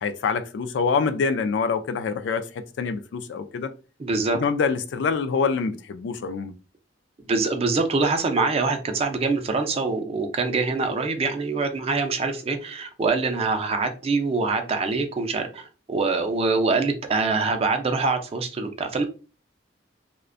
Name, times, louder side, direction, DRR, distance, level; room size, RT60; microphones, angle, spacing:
voice 1, 0.0-3.7 4.3-6.5, left 5 dB, 65° left, 0.3 m, -25 dB
voice 2, 4.0-4.4 7.3-19.0, right 3 dB, 35° right, 0.4 m, -24 dB
2.4 x 2.1 x 2.4 m
head